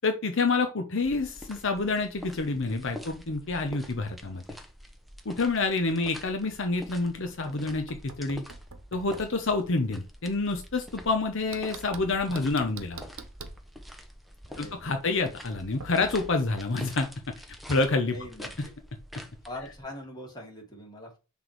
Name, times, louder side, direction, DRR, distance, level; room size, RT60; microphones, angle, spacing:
voice 1, 0.0-4.4 5.2-8.4 8.9-13.1 14.6-17.1 17.7-18.2, left 3 dB, 65° left, 6 dB, 0.9 m, -28 dB
sound 1, 1.0-19.8, equal, ahead, 0.8 m, -46 dB
Knock, 7.3-9.4 11.5-13.6 15.8-16.3, right 4 dB, 90° right, 0.9 m, -45 dB
voice 2, 14.5-14.9 18.1-18.5 19.4-21.2, left 1 dB, 20° left, 0 dB, 2.4 m, -42 dB
6.1 x 3.6 x 4.6 m, 0.30 s
head